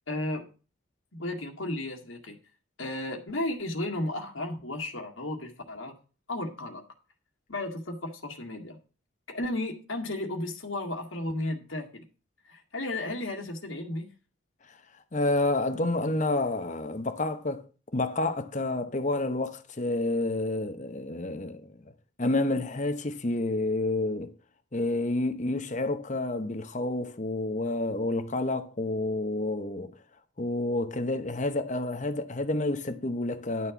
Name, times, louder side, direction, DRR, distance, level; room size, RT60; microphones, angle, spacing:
voice 1, 0.1-0.5 1.1-2.4 2.8-5.9 6.3-6.8 7.5-8.8 9.3-12.0 12.5-14.1, left 1 dB, 80° left, 1.9 m, -34 dB
voice 2, 15.1-17.6 17.9-21.7 22.2-24.3 24.7-29.9 30.4-33.7, left 2 dB, 35° left, 0.9 m, -29 dB
11.0 x 4.3 x 7.0 m
head